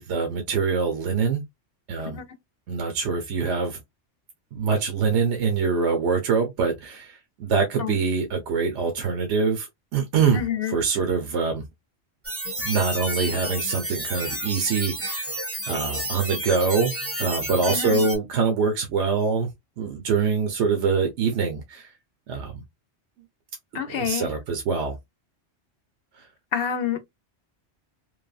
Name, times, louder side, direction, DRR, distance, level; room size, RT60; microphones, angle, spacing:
voice 1, 0.0-1.4 1.9-2.2 2.7-3.8 4.5-11.6 12.6-15.3 15.7-16.9 17.2-19.5 19.8-21.9 22.3-22.6 23.7-25.0 26.2-26.3, right 5 dB, 70° right, 1.0 m, -24 dB
voice 2, 10.4-10.7 17.7-18.0 23.8-24.3 26.5-27.0, left 8 dB, 60° left, 0.7 m, -27 dB
sound 1, 12.2-18.2, right 1 dB, 15° right, 0.7 m, -31 dB
3.2 x 2.1 x 2.3 m
omnidirectional pair, 1.2 m